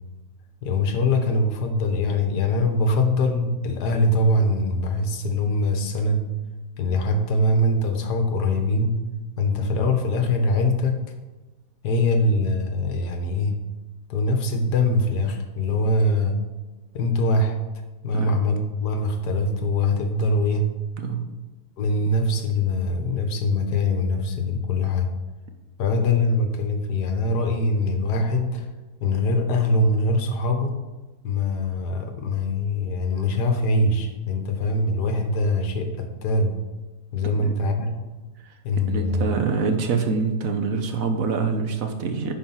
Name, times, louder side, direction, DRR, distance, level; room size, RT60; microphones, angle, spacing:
voice 1, 0.6-6.2 6.8-8.9 9.4-11.0 11.8-13.5 14.1-16.4 16.9-17.5 18.0-20.7 21.8-25.1 25.8-28.7 29.0-30.7 31.2-36.6 37.1-38.0 38.6-39.4, left 2 dB, 75° left, 5 dB, 1.5 m, -23 dB
voice 2, 21.0-21.3 37.2-37.5 38.4-38.5 38.9-42.3, right 5 dB, 60° right, 6 dB, 1.1 m, -25 dB
9.9 x 4.5 x 5.6 m, 1.2 s
omnidirectional pair, 1.8 m